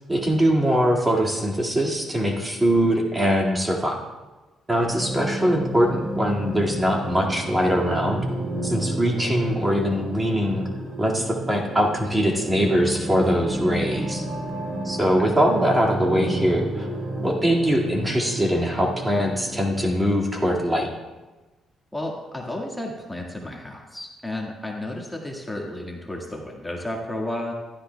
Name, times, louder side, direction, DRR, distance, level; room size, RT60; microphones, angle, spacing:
voice 1, 0.1-4.0 4.7-8.3 8.6-10.7 11.0-14.2 14.8-16.9 17.2-20.9, equal, 15° right, -1 dB, 2.0 m, -22 dB
sound 1, 4.7-19.9, right 1 dB, 40° right, 3.7 m, -31 dB
voice 2, 21.9-27.5, left 1 dB, 10° left, -1 dB, 1.7 m, -32 dB
15.5 x 12.0 x 2.3 m, 1.2 s
cardioid pair, 90°, 0 cm